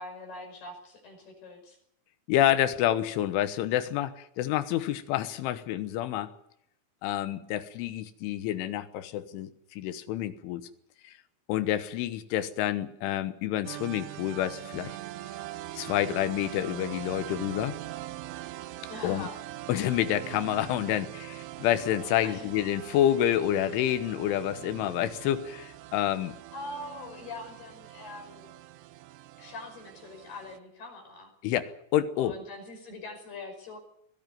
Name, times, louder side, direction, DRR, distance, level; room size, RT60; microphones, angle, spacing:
voice 1, 0.0-1.8 18.9-19.4 22.2-22.5 26.5-28.5 29.4-31.3 32.2-33.8, left 2 dB, 50° left, 4 dB, 7.2 m, -43 dB
voice 2, 2.3-6.3 7.0-10.6 11.0-11.1 11.5-15.0 15.8-17.8 19.0-19.3 19.7-26.4 31.4-32.4, left 12 dB, 75° left, 12 dB, 3.5 m, -28 dB
sound 1, 13.7-30.6, right 15 dB, 80° right, 3.5 m, -42 dB
21.5 x 16.0 x 9.4 m, 0.75 s
omnidirectional pair, 5.8 m